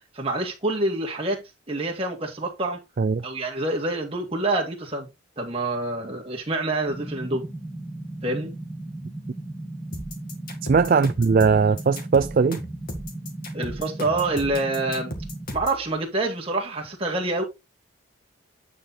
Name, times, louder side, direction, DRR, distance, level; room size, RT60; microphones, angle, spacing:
voice 1, 0.1-2.8 3.2-5.1 5.4-7.5 8.2-8.5 13.5-15.1 15.5-17.4, right 2 dB, 25° right, 2.1 m, -27 dB
sound 1, 6.9-15.5, right 1 dB, ahead, 2.7 m, -36 dB
sound 2, 9.9-15.8, left 1 dB, 40° left, 1.9 m, -36 dB
voice 2, 10.6-12.6, right 5 dB, 45° right, 0.3 m, -19 dB
9.3 x 4.3 x 4.1 m
head